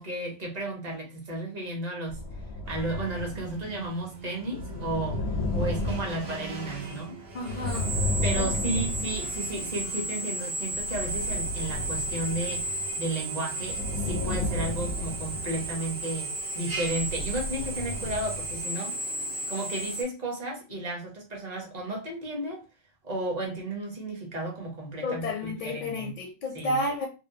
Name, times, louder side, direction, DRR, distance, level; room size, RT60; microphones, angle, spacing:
voice 1, 0.0-2.2 2.7-5.3 5.5-7.2 8.2-12.6 13.0-19.0 19.5-22.6 23.0-26.1 26.5-26.8, right 1 dB, 40° right, 1.0 m, -33 dB
sound 1, 2.1-10.0 10.6-13.0 13.6-16.1 16.8-18.6, left 2 dB, 80° left, 0.8 m, -34 dB
Drill, 2.7-20.0, right 2 dB, 75° right, 1.0 m, -35 dB
voice 2, 7.3-7.9 8.4-8.8 25.0-27.1, left 2 dB, 55° left, 0.6 m, -31 dB
2.8 x 2.1 x 2.6 m
omnidirectional pair, 1.1 m